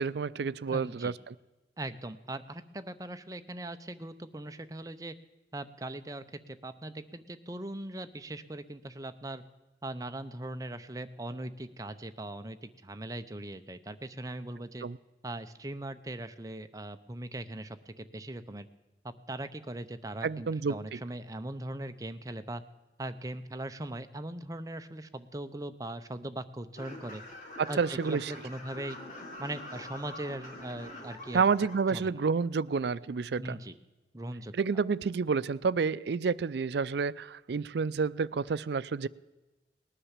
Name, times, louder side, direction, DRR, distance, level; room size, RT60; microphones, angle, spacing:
voice 1, 0.0-1.3 14.8-15.0 20.2-21.0 27.6-28.3 31.3-33.6 34.5-39.1, right 5 dB, 70° right, 18 dB, 0.4 m, -29 dB
voice 2, 0.7-1.1 1.8-5.1 5.5-9.4 9.8-14.9 15.2-18.7 19.0-22.6 23.0-27.2 27.7-29.0 29.4-31.4 31.9-32.2 33.4-33.7 34.1-34.5, right 1 dB, 20° right, 9 dB, 0.6 m, -40 dB
sound 1, 26.8-31.7, left 1 dB, 45° left, 3.3 m, -45 dB
19.0 x 10.0 x 7.4 m, 1.1 s
head